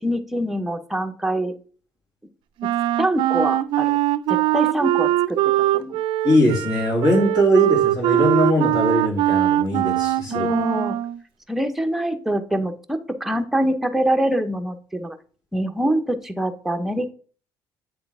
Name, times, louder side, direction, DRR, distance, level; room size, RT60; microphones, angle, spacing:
voice 1, 0.0-1.5 3.0-4.0 4.3-5.4 5.7-6.0 10.3-11.0 11.5-15.2 15.5-17.1, right 1 dB, 5° right, 6 dB, 0.8 m, -24 dB
Wind instrument woodwind instrument, 2.6-11.2, right 14 dB, 70° right, 0.4 m, -21 dB
voice 2, 6.2-10.5, equal, 50° left, -1 dB, 3.2 m, -20 dB
8.0 x 3.7 x 3.5 m, 0.41 s
supercardioid pair, 85°, 9 cm